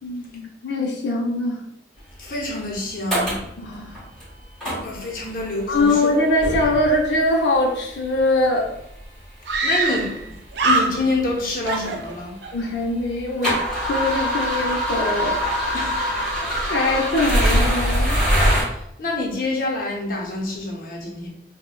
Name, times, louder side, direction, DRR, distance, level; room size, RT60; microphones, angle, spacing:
voice 1, 0.0-1.6 3.6-4.0 5.7-8.7 12.5-13.6 13.9-15.4 16.7-18.2, left 2 dB, 85° left, 0 dB, 0.6 m, -22 dB
voice 2, 2.2-3.4 4.8-6.1 9.6-10.1 10.6-12.4 15.7-16.1 16.4-16.7 18.5-21.3, left 2 dB, 50° left, -1 dB, 0.8 m, -27 dB
sound 1, 2.6-2.7 3.1-3.5 3.9-4.2 4.6-5.2 5.7-6.0 6.4-7.1 8.0-8.1 9.0-9.1 9.5-9.6 10.3-10.4 10.6-12.5 12.9-18.6, equal, ahead, 1.4 m, -23 dB
Screaming, 8.4-8.5 8.7-8.8 9.5-10.3 10.5-11.3 11.6-12.6, right 3 dB, 85° right, 0.5 m, -23 dB
5.1 x 2.3 x 2.2 m, 0.76 s
head